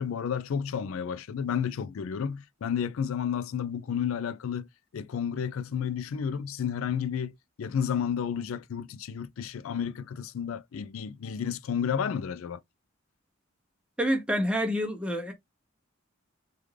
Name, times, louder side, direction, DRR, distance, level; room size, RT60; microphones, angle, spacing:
voice 1, 0.0-4.7 4.9-7.3 7.6-12.6, left 7 dB, 75° left, 0.4 m, -31 dB
voice 2, 14.0-15.3, equal, 5° right, 0.7 m, -27 dB
3.5 x 2.4 x 3.1 m
head